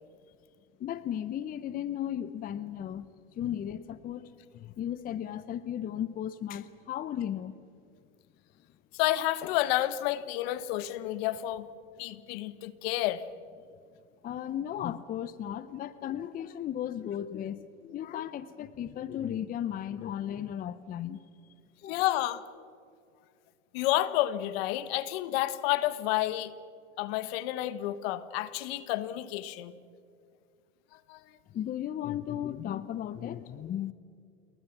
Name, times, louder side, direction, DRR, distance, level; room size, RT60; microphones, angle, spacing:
voice 1, 0.8-3.1 3.3-7.5 14.2-21.2 21.8-22.1 31.5-33.9, left 10 dB, 25° left, 15 dB, 0.7 m, -35 dB
voice 2, 8.9-11.7 12.0-13.2 21.9-22.4 23.7-26.5 27.0-29.7 31.1-31.2, left 15 dB, 60° left, 15 dB, 1.5 m, -30 dB
28.5 x 22.5 x 6.0 m, 2.3 s
supercardioid pair, 120°, 34 cm